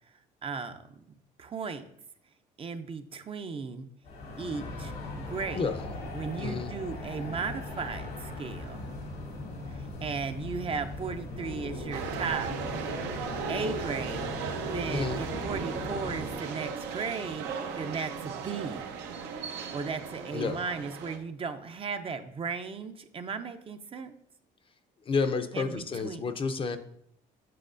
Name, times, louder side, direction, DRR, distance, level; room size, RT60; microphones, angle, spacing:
voice 1, 0.4-1.0 1.4-1.8 2.6-3.9 4.4-4.9 5.3-5.7 6.1-8.8 9.7-12.5 13.5-14.2 14.6-17.5 17.8-18.9 19.7-24.2 25.5-26.2, right 5 dB, 35° right, 8 dB, 0.5 m, -36 dB
sound 1, 4.0-16.3, left 2 dB, 90° left, 2.1 m, -39 dB
voice 2, 6.4-6.7 14.9-15.2 20.3-20.6 25.1-26.8, left 4 dB, 30° left, 9 dB, 0.5 m, -30 dB
sound 2, 11.9-21.2, right 6 dB, 85° right, 0.8 m, -36 dB
7.6 x 5.9 x 2.5 m, 0.71 s
cardioid pair, 110°, 17 cm